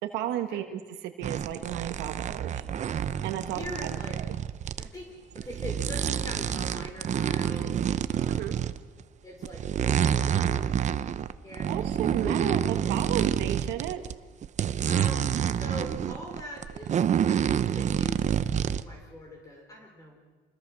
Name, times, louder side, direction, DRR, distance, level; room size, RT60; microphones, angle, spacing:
voice 1, 0.0-2.6 3.2-3.7 8.3-8.6 11.7-14.0, right 11 dB, 90° right, 6 dB, 1.7 m, -33 dB
sound 1, 1.2-4.9 5.4-9.0 9.4-14.1 14.4-18.8, right 9 dB, 45° right, 0.8 m, -28 dB
voice 2, 3.4-4.2 4.8-7.8 8.1-8.6 9.2-10.8 11.4-11.8 12.1-12.6 14.8-17.0 17.8-20.2, left 1 dB, 20° left, 1 dB, 5.0 m, -42 dB
28.5 x 20.5 x 6.4 m, 1.3 s
cardioid pair, 110°, 17 cm